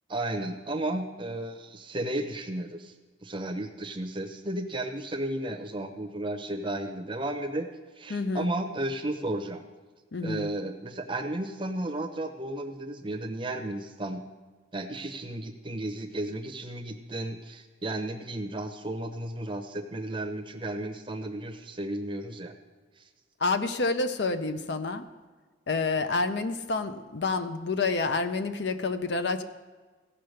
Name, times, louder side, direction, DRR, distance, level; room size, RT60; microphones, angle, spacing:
voice 1, 0.1-2.9 3.2-7.7 8.0-9.6 10.2-14.3 14.7-22.5 23.0-23.1, right 1 dB, 25° right, 5 dB, 0.7 m, -33 dB
voice 2, 8.1-8.5 10.1-10.5 23.4-25.0 25.7-29.4, left 3 dB, 55° left, 10 dB, 0.6 m, -28 dB
15.5 x 5.6 x 6.5 m, 1.4 s
head